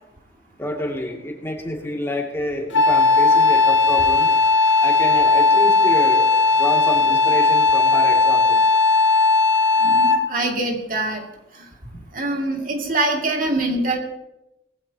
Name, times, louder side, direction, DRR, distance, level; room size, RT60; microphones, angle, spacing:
voice 1, 0.6-4.3 4.8-6.3 6.6-8.6, left 1 dB, 15° left, -1 dB, 2.5 m, -28 dB
Wind instrument woodwind instrument, 2.7-10.4, left 3 dB, 80° left, 0.9 m, -16 dB
voice 2, 9.8-11.2 11.6-11.7 12.1-14.0, right 2 dB, 50° right, 1 dB, 2.5 m, -24 dB
20.0 x 16.0 x 2.9 m, 0.86 s
head